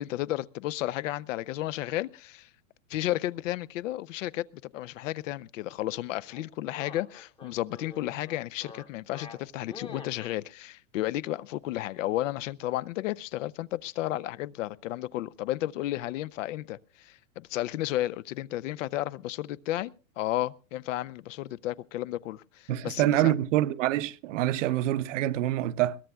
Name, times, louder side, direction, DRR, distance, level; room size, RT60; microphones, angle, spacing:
voice 1, 0.0-2.5 2.9-23.3, left 15 dB, 70° left, 0.6 m, -33 dB
sound 1, 6.3-10.4, left 4 dB, 15° left, 0.9 m, -46 dB
voice 2, 22.7-26.0, right 14 dB, 65° right, 0.8 m, -26 dB
21.5 x 17.5 x 2.3 m
supercardioid pair, 155°, 40 cm